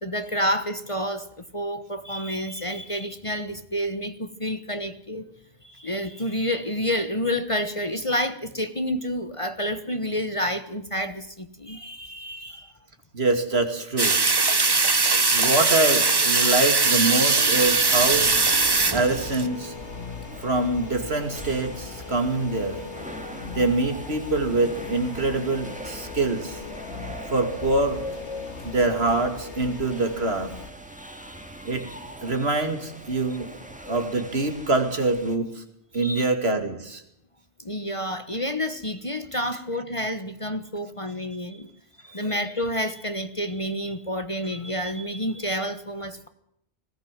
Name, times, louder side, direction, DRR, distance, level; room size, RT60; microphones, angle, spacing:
voice 1, 0.0-1.3 1.5-5.3 5.6-12.7 31.0-31.4 31.8-32.0 33.8-34.0 35.9-36.2 37.6-41.7 42.0-46.3, equal, 30° left, 10 dB, 1.2 m, -29 dB
voice 2, 13.1-14.2 15.3-18.3 18.9-19.7 20.4-22.8 23.5-26.6 27.3-28.0 28.6-30.5 31.6-31.9 32.2-33.5 33.9-35.6 35.9-37.0, right 2 dB, 60° right, 7 dB, 2.7 m, -24 dB
sound 1, 14.0-19.5, right 3 dB, 25° right, 0.8 m, -21 dB
sound 2, 17.3-35.4, equal, 5° right, 2.0 m, -42 dB
sound 3, 17.7-30.7, left 5 dB, 75° left, 2.1 m, -39 dB
20.0 x 17.5 x 7.5 m, 0.74 s
omnidirectional pair, 1.2 m